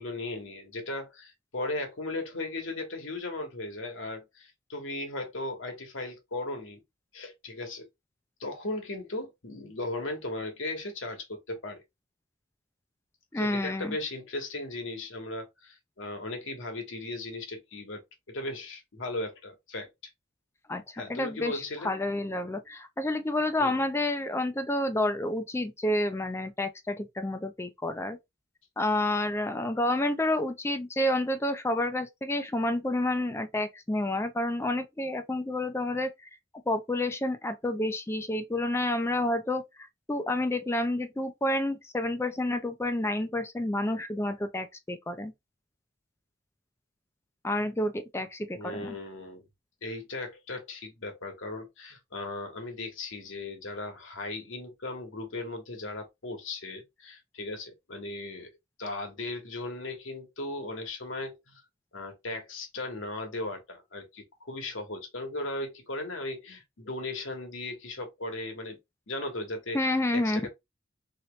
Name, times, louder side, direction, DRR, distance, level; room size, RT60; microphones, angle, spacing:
voice 1, 0.0-6.8 7.1-7.9 8.4-11.8 13.3-18.0 18.3-19.9 20.9-21.9 23.6-23.8 48.6-49.4 49.8-58.5 58.8-61.6 61.9-68.8 69.1-69.8 70.1-70.5, left 2 dB, 75° left, 1.1 m, -37 dB
voice 2, 13.3-14.0 20.7-28.2 28.8-36.3 36.7-39.6 40.1-45.3 47.4-49.0 69.7-70.4, left 1 dB, 15° left, 0.4 m, -29 dB
3.0 x 2.9 x 3.1 m
head